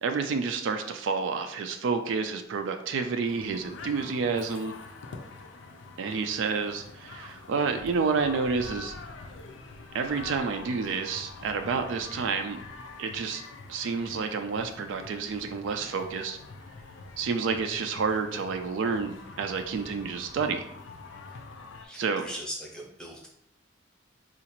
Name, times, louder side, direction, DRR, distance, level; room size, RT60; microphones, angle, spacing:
voice 1, 0.0-4.7 6.0-8.9 9.9-12.6 13.0-13.4 13.7-16.4 17.2-20.6 22.0-22.3, right 5 dB, 70° right, 6 dB, 0.3 m, -29 dB
sound 1, 3.2-21.8, left 3 dB, 70° left, 0.4 m, -45 dB
voice 2, 21.8-23.3, equal, 5° left, -2 dB, 0.6 m, -40 dB
3.8 x 2.4 x 2.9 m, 0.72 s
head